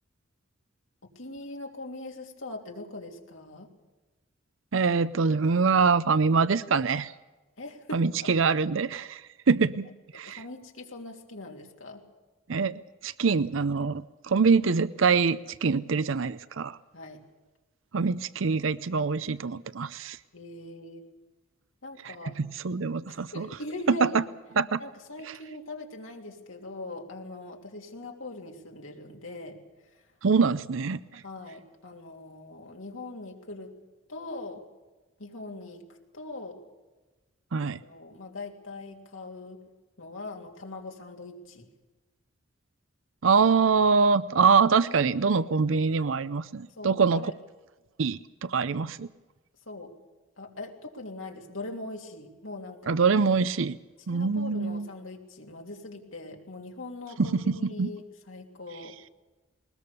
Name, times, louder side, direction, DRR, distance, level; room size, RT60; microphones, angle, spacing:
voice 1, 1.1-3.7 7.6-8.3 10.3-12.0 16.9-17.2 20.3-21.1 21.8-22.4 23.1-24.2 24.8-29.6 29.9-30.0 31.2-33.8 34.1-34.6 35.2-36.6 37.6-39.6 40.0-41.7 46.8-47.3 49.7-50.0 50.4-53.0 54.1-59.1, left 2 dB, 90° left, 1 dB, 3.1 m, -41 dB
voice 2, 4.7-7.1 7.9-9.9 10.1-10.4 12.5-16.8 17.9-20.2 22.0-23.5 24.6-24.8 30.2-31.2 37.5-37.8 43.2-47.3 48.0-49.1 52.9-53.8 54.1-54.9 57.2-57.9, right 5 dB, 80° right, 15 dB, 0.6 m, -24 dB
21.0 x 20.5 x 6.9 m, 1.2 s
head